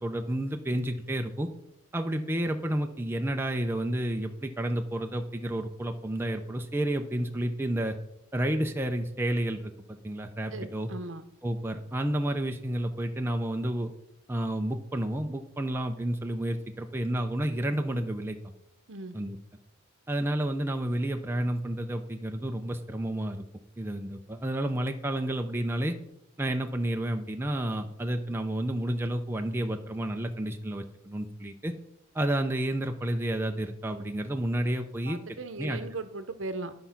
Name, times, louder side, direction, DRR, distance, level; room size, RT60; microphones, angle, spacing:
voice 1, 0.0-1.5 1.9-7.9 8.3-10.9 11.4-13.9 14.3-18.4 19.1-19.4 20.1-23.4 23.8-26.0 26.4-31.7 32.1-35.2 35.6-35.8, right 1 dB, 10° right, 4 dB, 0.5 m, -30 dB
voice 2, 10.5-11.2 18.9-19.2 35.1-36.7, right 3 dB, 65° right, 10 dB, 0.8 m, -38 dB
11.0 x 5.6 x 5.8 m, 0.83 s
head